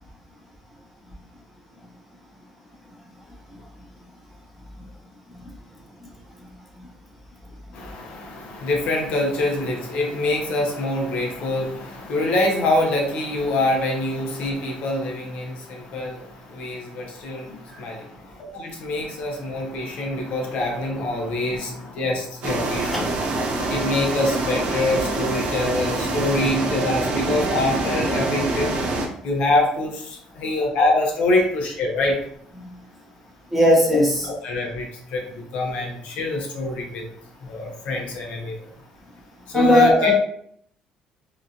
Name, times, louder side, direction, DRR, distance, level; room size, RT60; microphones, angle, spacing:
voice 1, 7.7-23.0 23.3-28.7 29.2-32.2 34.2-37.1 37.4-38.6 39.5-40.1, left 2 dB, 60° left, 0 dB, 0.6 m, -25 dB
sound 1, 22.4-29.1, right 2 dB, 50° right, 0.5 m, -25 dB
voice 2, 33.5-34.3 39.5-40.1, left 1 dB, 5° right, -5 dB, 0.6 m, -17 dB
2.8 x 2.3 x 2.5 m, 0.67 s
cardioid pair, 170°, 2 cm